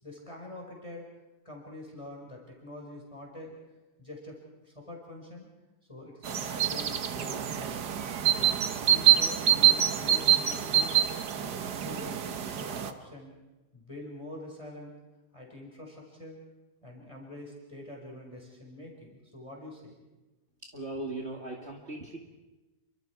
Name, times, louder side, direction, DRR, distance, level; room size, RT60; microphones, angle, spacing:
voice 1, 0.0-1.1 1.4-3.5 4.0-5.5 5.9-7.8 8.3-10.9 11.3-13.3 13.7-14.9 15.3-16.4 16.8-19.9, left 1 dB, 20° left, -1 dB, 4.8 m, -45 dB
sound 1, 6.2-12.9, right 10 dB, 80° right, 1.7 m, -26 dB
voice 2, 20.7-22.2, right 2 dB, 40° right, 0 dB, 2.3 m, -38 dB
29.0 x 25.0 x 4.7 m, 1.1 s
omnidirectional pair, 1.7 m